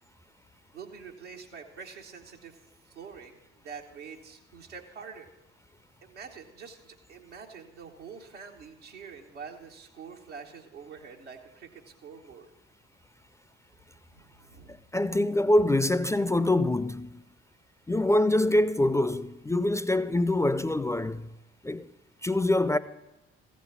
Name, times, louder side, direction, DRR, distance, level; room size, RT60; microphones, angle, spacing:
voice 1, 0.7-5.3 6.0-12.5 14.1-14.8, right 6 dB, 90° right, 1.0 m, -46 dB
voice 2, 14.7-17.2 17.9-21.3 21.6-21.9 22.2-22.8, left 1 dB, 10° left, 0.3 m, -25 dB
14.5 x 5.3 x 7.0 m
figure-of-eight pair, 45°, 34 cm